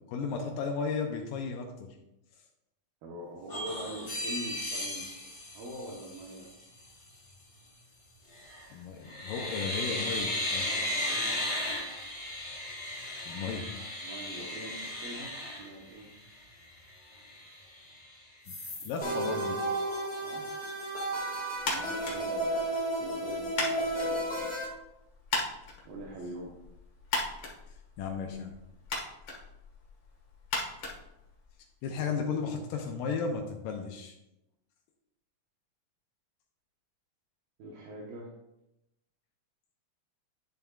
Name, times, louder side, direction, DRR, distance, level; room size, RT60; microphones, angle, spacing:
voice 1, 0.1-2.0 8.7-10.7 13.3-14.0 18.5-18.6 18.9-19.5 27.7-28.6 31.8-34.1, left 5 dB, 80° left, 2 dB, 2.3 m, -34 dB
voice 2, 3.0-5.1 5.5-6.5 10.6-11.9 14.0-16.1 18.8-19.4 20.2-20.5 21.6-24.6 25.9-26.6 37.6-38.3, right 1 dB, 80° right, -4 dB, 2.9 m, -44 dB
sound 1, 3.5-6.5 8.3-8.7 9.1-16.3 16.8-16.9 17.1-18.0 18.5-18.9, left 1 dB, 25° left, 1.8 m, -36 dB
sound 2, 19.0-24.6, right 1 dB, 10° left, 0.5 m, -32 dB
sound 3, 21.6-31.8, left 3 dB, 50° left, 1.8 m, -38 dB
10.5 x 7.1 x 2.4 m, 0.89 s
omnidirectional pair, 4.1 m